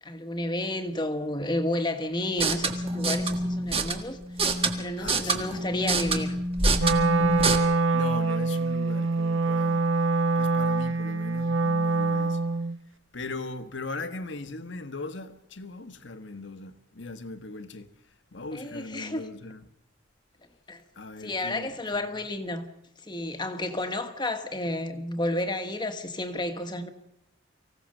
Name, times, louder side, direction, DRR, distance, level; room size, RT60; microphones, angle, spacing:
voice 1, 0.0-4.2 4.8-6.3 18.5-19.3 20.7-20.8 21.2-22.7 23.0-26.9, left 1 dB, 25° left, 1.5 m, -31 dB
sound 1, 2.3-7.6, right 3 dB, 30° right, 1.7 m, -27 dB
voice 2, 5.0-6.0 7.9-9.9 10.4-12.4 13.1-17.9 18.3-19.6 20.9-22.1, left 3 dB, 65° left, 1.4 m, -39 dB
Wind instrument woodwind instrument, 6.8-12.8, right 3 dB, 80° right, 1.0 m, -24 dB
24.5 x 16.5 x 6.6 m
head